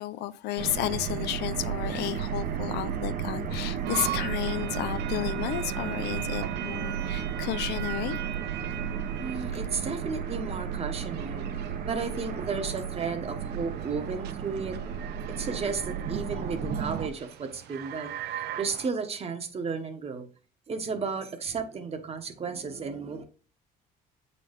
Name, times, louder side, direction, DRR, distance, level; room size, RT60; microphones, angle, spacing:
voice 1, 0.0-8.2, left 14 dB, 85° left, 0.5 m, -32 dB
sound 1, 0.6-17.1, right 7 dB, 60° right, 1.0 m, -33 dB
sound 2, 3.8-18.9, right 13 dB, 80° right, 0.6 m, -40 dB
voice 2, 9.2-11.5 11.8-14.8 15.4-20.3 20.7-23.2, right 5 dB, 35° right, 1.2 m, -33 dB
7.5 x 4.1 x 3.6 m
cardioid pair, 110°, 17 cm